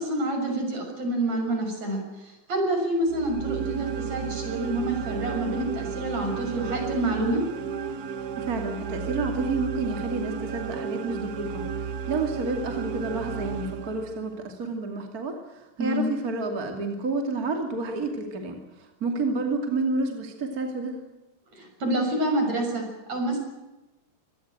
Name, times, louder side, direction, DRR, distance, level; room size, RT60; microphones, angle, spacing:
voice 1, 0.0-7.4 15.8-16.0 21.5-23.4, right 1 dB, 60° right, 3 dB, 7.7 m, -28 dB
sound 1, 3.1-14.4, right 6 dB, 90° right, 0.8 m, -33 dB
voice 2, 8.4-11.6 12.1-21.0, right 3 dB, 30° right, 3 dB, 2.9 m, -30 dB
25.5 x 18.5 x 9.0 m, 1.1 s
omnidirectional pair, 3.4 m